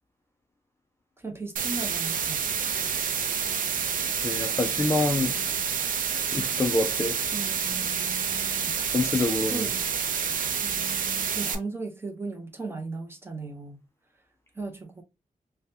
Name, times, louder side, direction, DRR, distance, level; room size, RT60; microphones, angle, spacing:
voice 1, 1.2-2.5 7.3-8.7 9.5-9.9 10.6-13.9 14.5-15.0, right 3 dB, 15° right, 0.7 m, -37 dB
sound 1, 1.6-11.6, right 7 dB, 75° right, 0.5 m, -28 dB
voice 2, 3.9-5.4 6.1-7.2 8.9-9.7, left 2 dB, 20° left, 0.4 m, -27 dB
3.4 x 2.2 x 2.7 m
wide cardioid pair, 135°, 14 cm